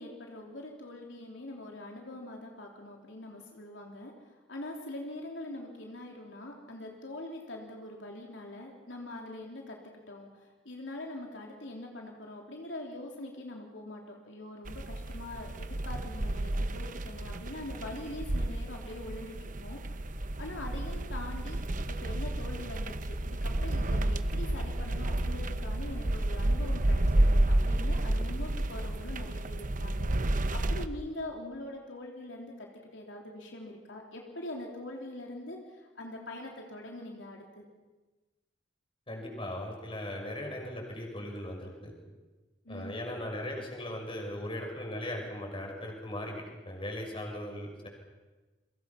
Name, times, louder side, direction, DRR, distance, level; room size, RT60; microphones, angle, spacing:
voice 1, 0.0-4.1 4.5-9.8 10.1-10.3 10.6-19.8 20.4-21.6 21.9-37.6 42.6-42.9, left 1 dB, 75° left, 0 dB, 3.4 m, -43 dB
sound 1, 14.7-30.9, right 1 dB, 45° right, 0.9 m, -31 dB
voice 2, 39.1-41.9 42.7-47.9, left 1 dB, 30° left, 1 dB, 6.3 m, -38 dB
30.0 x 24.0 x 5.9 m, 1.2 s
head